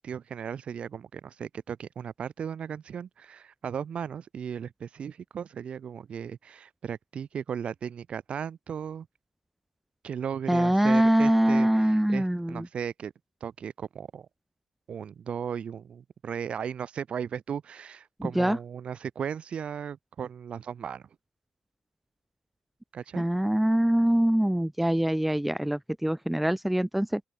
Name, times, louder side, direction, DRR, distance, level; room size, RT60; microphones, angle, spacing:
voice 1, 0.0-9.1 10.0-13.1 13.4-14.3 14.9-21.1 22.9-23.3, right 7 dB, 55° right, 4.1 m, -36 dB
voice 2, 10.5-12.7 18.2-18.6 23.1-27.2, right 1 dB, 5° right, 1.2 m, -24 dB
open air
supercardioid pair, 65°, 2 cm